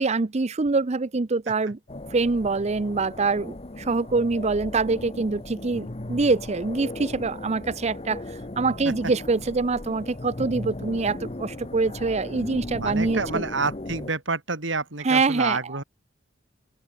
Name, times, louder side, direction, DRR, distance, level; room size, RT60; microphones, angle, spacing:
voice 1, 0.0-1.8 2.1-13.4 15.0-15.8, right 3 dB, 35° right, 0.6 m, -25 dB
sound 1, 1.9-14.1, left 1 dB, 30° left, 1.2 m, -37 dB
voice 2, 12.8-15.8, right 3 dB, 65° right, 3.4 m, -28 dB
open air
head